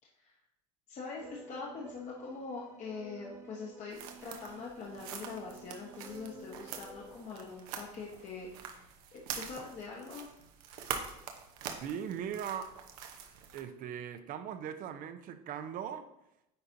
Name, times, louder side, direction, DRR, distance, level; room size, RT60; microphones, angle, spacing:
voice 1, 0.9-8.9 9.1-10.3, left 4 dB, 40° left, -3 dB, 1.2 m, -43 dB
sound 1, 1.2-7.2, right 3 dB, 15° right, 1.0 m, -52 dB
sound 2, 3.9-13.6, right 7 dB, 80° right, 0.9 m, -45 dB
voice 2, 11.8-12.7 13.5-16.1, right 8 dB, 45° right, 10 dB, 0.7 m, -39 dB
9.5 x 4.2 x 2.7 m, 0.82 s
supercardioid pair, 105°, 19 cm